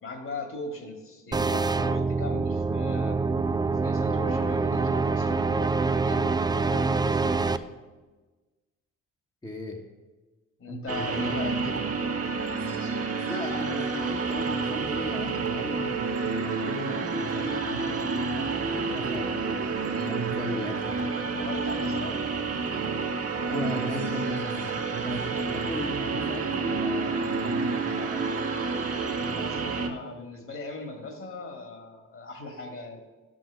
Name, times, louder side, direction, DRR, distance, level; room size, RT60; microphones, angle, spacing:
voice 1, 0.0-3.2 3.8-5.8 6.0-7.7 10.6-11.8 17.7-18.0 21.3-22.2 29.3-33.0, left 2 dB, 45° left, 5 dB, 2.0 m, -39 dB
sound 1, 1.3-7.6, right 4 dB, 15° right, 0.4 m, -25 dB
voice 2, 9.4-9.8 10.7-11.8 13.3-21.2 23.5-28.4, left 1 dB, 15° left, 0 dB, 1.2 m, -37 dB
sound 2, 10.9-29.9, right 4 dB, 50° right, 1.4 m, -29 dB
12.0 x 6.3 x 6.2 m, 1.2 s
cardioid pair, 90°, 30 cm